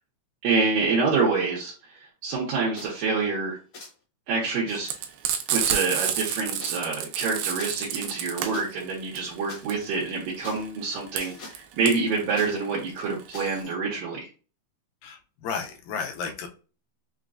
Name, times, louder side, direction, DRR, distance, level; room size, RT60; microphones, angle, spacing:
voice 1, 0.4-3.6 4.3-4.9 5.5-14.3, right 4 dB, 75° right, -5 dB, 2.4 m, -27 dB
sound 1, 2.8-3.1 3.7-3.9 4.7-4.8 5.6-6.7 7.6-7.7 8.5-8.6 9.5-9.6 10.4-10.6 11.2-11.6 12.4-12.5 13.3-13.7, left 3 dB, 60° left, 1.4 m, -43 dB
Frying (food), 4.9-13.6, right 9 dB, 90° right, 2.4 m, -30 dB
voice 2, 15.0-16.5, left 6 dB, 80° left, 4 dB, 2.2 m, -33 dB
6.0 x 2.2 x 2.4 m, 0.36 s
omnidirectional pair, 4.2 m